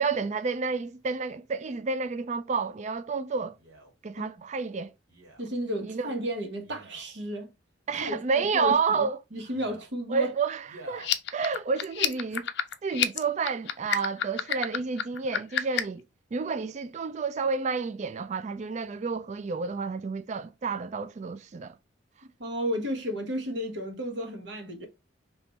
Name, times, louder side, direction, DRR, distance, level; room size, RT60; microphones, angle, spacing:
voice 1, 0.0-3.6 4.0-4.9 5.8-6.1 7.9-9.2 10.1-12.5 12.8-16.0 16.3-21.7, right 5 dB, 35° right, 0.3 m, -30 dB
Male speech man speaking, 3.6-3.9 5.1-5.5 6.6-7.1 8.0-8.5 9.4-9.9 10.6-11.1 11.8-11.9, right 1 dB, 80° right, 1.9 m, -50 dB
voice 2, 5.4-7.5 8.0-8.2 8.5-10.3 22.4-24.9, equal, 60° right, 1.1 m, -33 dB
sound 1, 11.0-16.0, left 10 dB, 55° left, 0.5 m, -29 dB
3.6 x 3.0 x 4.2 m
head